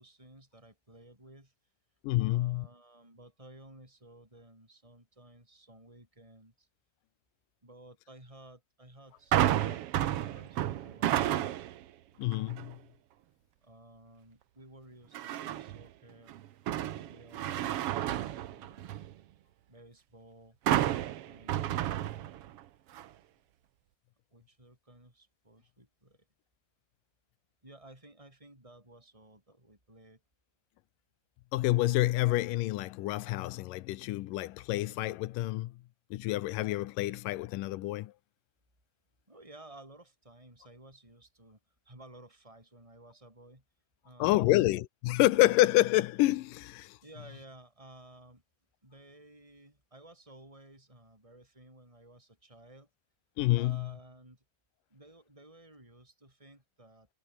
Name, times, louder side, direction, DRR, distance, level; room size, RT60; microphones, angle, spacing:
voice 1, 0.0-1.5 2.2-6.7 7.6-11.7 13.6-16.4 16.8-18.9 19.7-20.6 21.2-22.4 24.3-26.3 27.6-30.2 39.3-41.6 41.8-43.6 44.0-44.6 47.0-48.4 48.8-52.9 53.6-54.4 54.9-57.1, right 1 dB, 10° right, 7.6 m, -55 dB
voice 2, 2.0-2.7 12.2-12.8 31.5-35.8 36.1-38.1 44.2-47.0 53.4-53.9, left 17 dB, 80° left, 2.4 m, -28 dB
sound 1, 9.3-11.8 12.3-12.7 15.1-15.8 16.3-19.1 20.7-22.6 22.9-23.1, right 12 dB, 75° right, 1.4 m, -31 dB
omnidirectional pair, 3.9 m